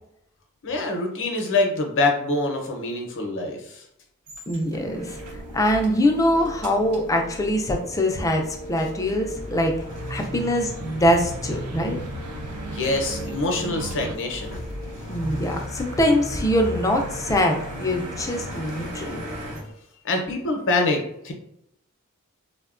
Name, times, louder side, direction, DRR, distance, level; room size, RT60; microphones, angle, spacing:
voice 1, 0.6-3.8 12.7-14.6 20.0-21.3, left 2 dB, 55° left, 2 dB, 0.6 m, -25 dB
sound 1, 4.3-19.6, equal, 85° right, 0.8 m, -37 dB
voice 2, 4.5-5.2 5.5-9.7 10.1-12.0 15.1-19.2, left 1 dB, 15° left, 2 dB, 0.3 m, -23 dB
sound 2, 4.8-19.7, left 1 dB, 35° right, 0.7 m, -43 dB
sound 3, 9.2-14.2, right 2 dB, 70° right, 0.3 m, -37 dB
3.4 x 2.2 x 2.4 m, 0.78 s
head